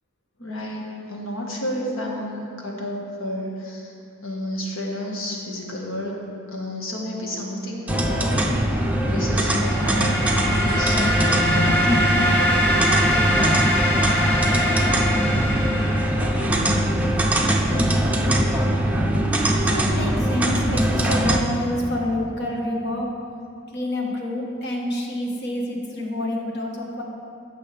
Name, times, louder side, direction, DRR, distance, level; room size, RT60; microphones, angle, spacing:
voice 1, 0.4-3.9 4.2-6.3 6.5-13.1, left 1 dB, 80° left, -2 dB, 1.6 m, -31 dB
sound 1, 7.9-21.4, right 1 dB, 5° right, 0.6 m, -21 dB
sound 2, 8.9-16.7, equal, 10° left, 1.3 m, -24 dB
voice 2, 19.2-23.2 23.7-27.0, left 1 dB, 55° left, 0 dB, 1.4 m, -28 dB
15.5 x 6.3 x 3.4 m, 2.4 s
head